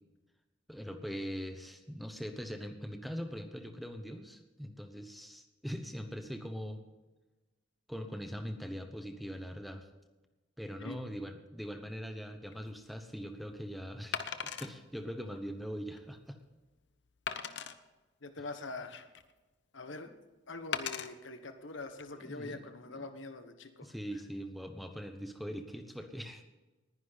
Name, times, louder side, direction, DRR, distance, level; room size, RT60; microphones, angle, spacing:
voice 1, 0.7-6.8 7.9-9.9 10.6-16.4 22.2-23.1 23.8-26.5, equal, ahead, 6 dB, 1.0 m, -42 dB
Wood, 12.5-12.7 14.1-14.7 15.3-15.4 16.0-16.1 17.3-17.7 18.5-19.3 20.7-21.1 21.8-22.0, left 7 dB, 65° left, 0.9 m, -38 dB
voice 2, 18.2-19.1 19.7-20.1 20.5-23.9, left 3 dB, 80° left, 8 dB, 1.2 m, -44 dB
20.0 x 10.5 x 4.1 m, 1.2 s
head